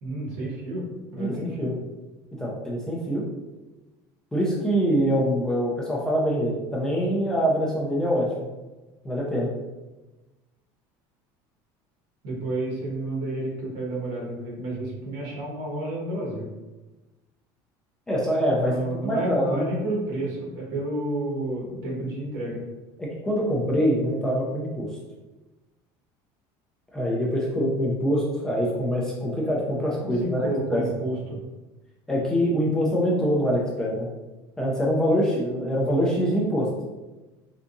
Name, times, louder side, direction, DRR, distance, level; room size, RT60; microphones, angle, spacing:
voice 1, 0.0-0.9 1.1-1.7 12.2-16.5 18.6-22.6 30.0-31.2, right 1 dB, 65° right, -3 dB, 1.3 m, -30 dB
voice 2, 1.2-1.7 2.3-3.2 4.3-8.5 9.0-9.5 18.1-19.6 23.0-24.9 26.9-30.8 32.1-34.1 34.6-36.7, equal, 5° left, -5 dB, 0.4 m, -24 dB
3.4 x 2.7 x 2.5 m, 1.1 s
cardioid pair, 175°, 10 cm